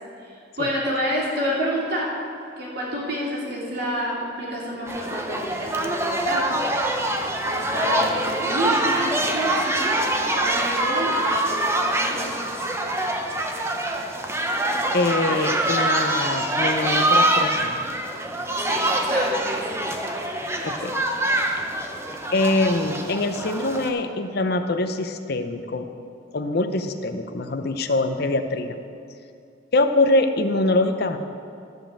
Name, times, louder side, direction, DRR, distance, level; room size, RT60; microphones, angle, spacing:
voice 1, 0.2-2.1 2.6-6.4 7.4-12.3 18.6-19.8, equal, 60° right, -5 dB, 2.8 m, -29 dB
sound 1, 4.9-23.9, right 1 dB, 15° right, 0.7 m, -24 dB
voice 2, 14.9-17.8 20.6-20.9 22.3-25.9 26.3-28.8 29.7-31.2, left 2 dB, 55° left, 7 dB, 0.7 m, -23 dB
13.0 x 5.2 x 7.4 m, 2.5 s
head